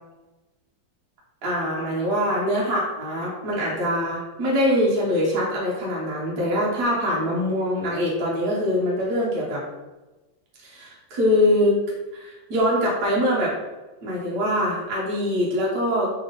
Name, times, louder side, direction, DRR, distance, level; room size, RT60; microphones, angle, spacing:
voice 1, 1.4-9.6 10.6-11.8 12.1-13.5 14.0-16.1, left 1 dB, 60° right, -5 dB, 1.6 m, -23 dB
3.7 x 3.7 x 3.9 m, 1.1 s
omnidirectional pair, 2.0 m